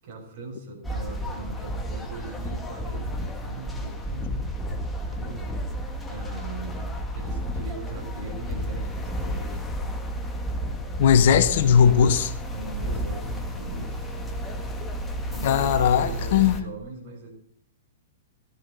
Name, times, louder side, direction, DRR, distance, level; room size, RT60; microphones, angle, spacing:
voice 1, 0.0-4.5 5.1-5.4 6.1-9.8 12.5-14.1 15.3-17.3, right 2 dB, 50° right, 6.4 m, -40 dB
sound 1, 0.8-16.6, equal, 10° left, 1.8 m, -32 dB
voice 2, 11.0-12.3 15.4-16.6, left 8 dB, 55° left, 1.2 m, -18 dB
15.0 x 12.5 x 4.0 m
figure-of-eight pair, 110°, 0 cm